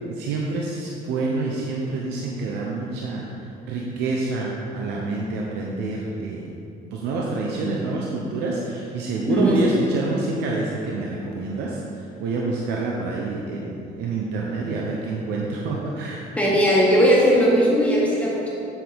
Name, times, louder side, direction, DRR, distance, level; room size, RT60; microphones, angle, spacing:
voice 1, 0.1-3.3 3.7-6.5 6.9-16.2, right 3 dB, 85° right, -2 dB, 0.8 m, -27 dB
voice 2, 9.3-9.7 16.4-18.5, equal, 10° left, -6 dB, 1.4 m, -18 dB
7.6 x 7.5 x 3.6 m, 2.7 s
cardioid pair, 110°, 17 cm